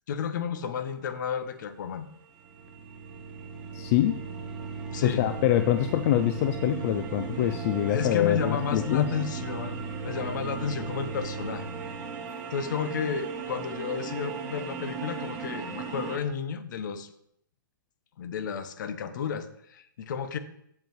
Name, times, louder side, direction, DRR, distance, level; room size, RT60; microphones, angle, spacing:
voice 1, 0.1-2.1 4.9-5.2 7.8-11.7 12.5-17.1 18.2-20.4, left 7 dB, 60° left, 11 dB, 0.8 m, -32 dB
sound 1, 2.2-16.2, right 6 dB, 25° right, 1.4 m, -39 dB
sound 2, 2.3-12.2, right 4 dB, 5° right, 1.9 m, -38 dB
voice 2, 3.7-4.2 5.0-9.1, left 12 dB, 40° left, 9 dB, 0.4 m, -25 dB
7.2 x 5.2 x 4.6 m, 0.73 s
hypercardioid pair, 135°, 11 cm